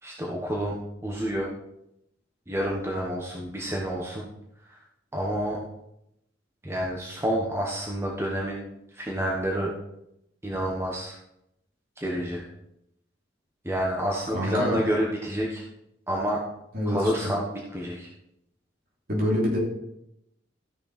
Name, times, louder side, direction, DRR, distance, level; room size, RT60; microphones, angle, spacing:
voice 1, 0.0-0.8 1.0-1.5 2.5-4.3 4.7-4.8 5.1-5.6 6.6-8.6 8.9-9.7 10.4-11.2 12.0-12.4 13.6-15.6 16.1-16.4 16.9-18.1, equal, 15° right, -2 dB, 1.3 m, -29 dB
voice 2, 14.3-14.8 16.7-17.3 19.1-19.6, equal, 50° right, -2 dB, 3.3 m, -26 dB
13.5 x 6.6 x 4.2 m, 0.81 s
head